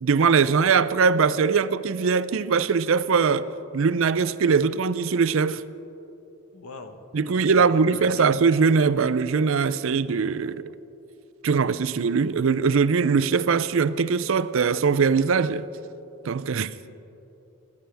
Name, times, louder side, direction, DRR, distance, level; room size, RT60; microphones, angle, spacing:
voice 1, 0.0-3.5 3.7-5.6 7.1-10.6 11.4-15.7 16.2-16.9, right 5 dB, 65° right, 0.5 m, -21 dB
voice 2, 6.5-8.4, left 2 dB, 85° left, 1.2 m, -42 dB
21.5 x 15.5 x 3.4 m
head